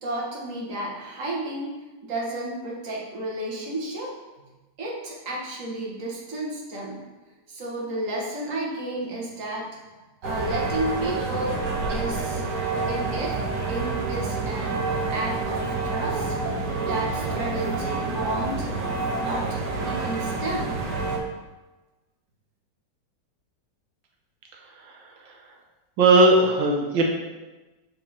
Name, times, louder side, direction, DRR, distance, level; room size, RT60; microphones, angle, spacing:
voice 1, 0.0-4.1 4.8-7.0 7.5-9.7 10.2-12.4 12.9-13.4 13.7-16.3 16.8-18.7 19.2-20.8, right 1 dB, 45° right, -4 dB, 1.9 m, -32 dB
sound 1, 10.2-21.2, right 3 dB, 65° right, 1.7 m, -28 dB
voice 2, 24.7-25.4 26.0-27.0, right 2 dB, 90° right, 1 dB, 1.6 m, -19 dB
6.5 x 5.4 x 4.2 m, 1.1 s
omnidirectional pair, 2.0 m